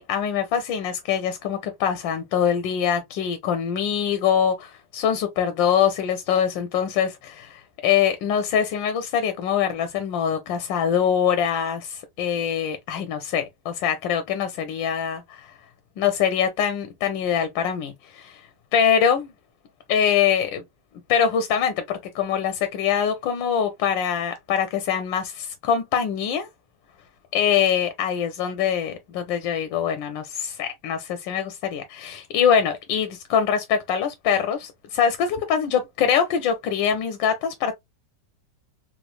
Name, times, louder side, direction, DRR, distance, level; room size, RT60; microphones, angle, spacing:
voice 1, 0.0-15.5 16.0-18.4 18.7-19.3 19.9-20.6 21.1-26.5 27.3-37.7, left 8 dB, 90° left, 1.3 m, -23 dB
3.2 x 3.2 x 2.3 m
omnidirectional pair, 2.0 m